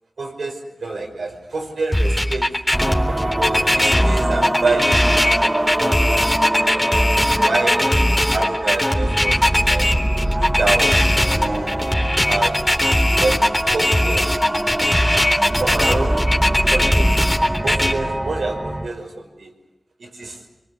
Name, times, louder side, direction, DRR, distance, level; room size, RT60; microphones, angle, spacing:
voice 1, 0.2-2.5 3.1-5.1 5.4-6.0 6.5-6.8 7.4-8.0 8.3-9.9 10.4-11.8 12.2-12.7 13.2-14.3 15.3-16.3 16.7-17.3 17.6-19.5 20.0-20.4, right 3 dB, 90° right, 3 dB, 5.5 m, -27 dB
sound 1, 1.9-17.9, left 1 dB, 15° left, 3.6 m, -19 dB
sound 2, 2.7-18.9, right 1 dB, 20° right, 1.7 m, -24 dB
26.5 x 23.0 x 8.2 m, 0.95 s
wide cardioid pair, 55°, 0 cm